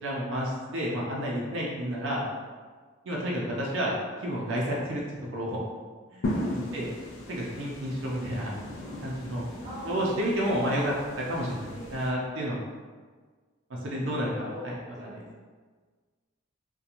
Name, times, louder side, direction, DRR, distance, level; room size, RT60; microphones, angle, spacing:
voice 1, 0.0-2.2 3.1-3.9 4.2-5.0 5.3-5.6 6.1-6.4 6.7-6.9 7.3-8.5 9.0-9.5 9.8-12.6 13.7-14.7 15.0-15.2, equal, 70° right, -4 dB, 0.5 m, -30 dB
sound 1, 6.2-12.1, left 1 dB, 70° left, 0.4 m, -37 dB
voice 2, 9.6-10.4 11.7-12.0 14.0-15.1, equal, 15° right, -8 dB, 0.7 m, -42 dB
2.8 x 2.1 x 2.5 m, 1.5 s
head